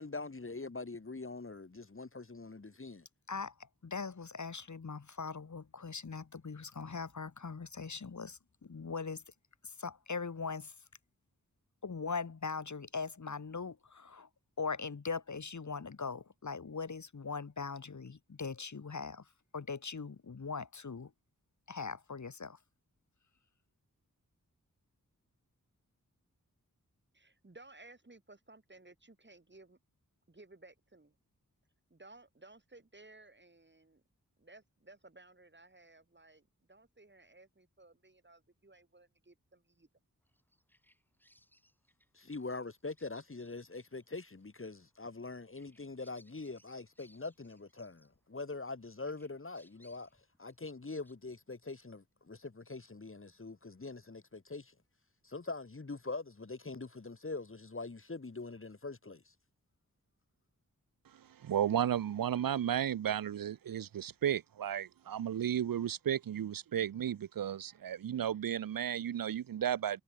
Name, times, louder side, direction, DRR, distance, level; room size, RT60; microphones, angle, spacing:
voice 1, 0.0-3.1 42.1-50.1 50.4-54.7 55.2-59.3, left 3 dB, 40° left, 2.3 m, -43 dB
voice 2, 3.3-9.2 9.6-10.7 11.8-14.3 14.6-19.3 19.5-21.1 21.7-22.6, left 5 dB, 60° left, 2.0 m, -41 dB
voice 3, 27.1-29.8 30.3-31.2 31.9-34.0 34.4-39.9, right 2 dB, 35° right, 6.6 m, -58 dB
Bird vocalization bird call bird song, 40.3-48.7 49.0-51.2, equal, 5° left, 7.4 m, -69 dB
voice 4, 61.2-70.0, right 10 dB, 85° right, 0.6 m, -34 dB
wide cardioid pair, 70°, 33 cm